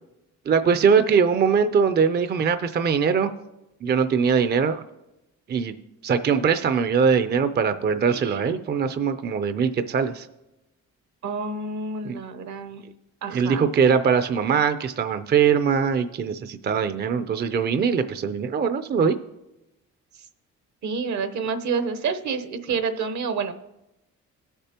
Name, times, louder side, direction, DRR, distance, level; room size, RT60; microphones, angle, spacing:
voice 1, 0.5-3.3 3.8-4.8 5.5-5.7 6.0-10.3 12.0-12.2 13.3-19.2, right 6 dB, 35° right, 10 dB, 0.5 m, -21 dB
voice 2, 8.1-8.6 11.2-12.8 13.2-13.6 20.8-23.5, right 5 dB, 65° right, 8 dB, 1.0 m, -29 dB
17.5 x 6.8 x 2.9 m, 0.93 s
cardioid pair, 90°, 30 cm